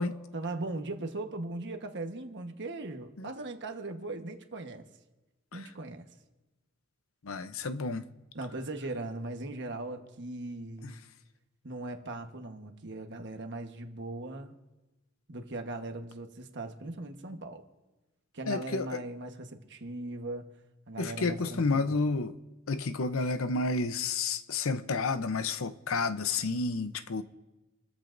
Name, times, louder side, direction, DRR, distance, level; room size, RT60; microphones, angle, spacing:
voice 1, 0.3-4.8 5.5-6.1 8.3-11.0 11.6-14.6 15.3-17.7 18.3-20.5 20.9-22.0, right 2 dB, 55° right, 1.2 m, -39 dB
voice 2, 7.2-8.0 10.8-10.9 18.5-19.0 21.0-22.4 22.7-27.2, left 3 dB, 70° left, 0.7 m, -30 dB
27.5 x 14.0 x 2.6 m
head